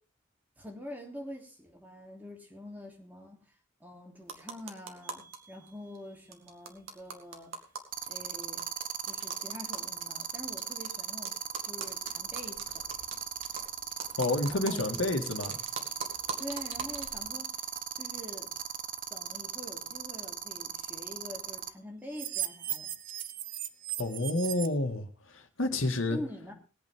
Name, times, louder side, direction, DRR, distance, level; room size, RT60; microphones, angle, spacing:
voice 1, 0.6-3.4 3.8-7.5 8.1-8.6 9.0-11.4 11.6-12.8 14.5-14.9 16.4-17.6 18.0-18.5 19.1-22.9 26.1-26.5, left 1 dB, 10° right, 1 dB, 3.1 m, -45 dB
sound 1, 4.2-5.4 5.7-5.8 6.0-6.1 6.3-10.9 11.2-17.2, right 5 dB, 80° right, 2.2 m, -43 dB
sound 2, 5.0-5.3 7.9-21.7 22.1-24.7, right 9 dB, 45° right, 0.9 m, -36 dB
voice 2, 14.2-15.6 24.0-26.2, left 2 dB, 80° left, 4 dB, 2.0 m, -30 dB
21.0 x 8.5 x 3.7 m, 0.33 s
head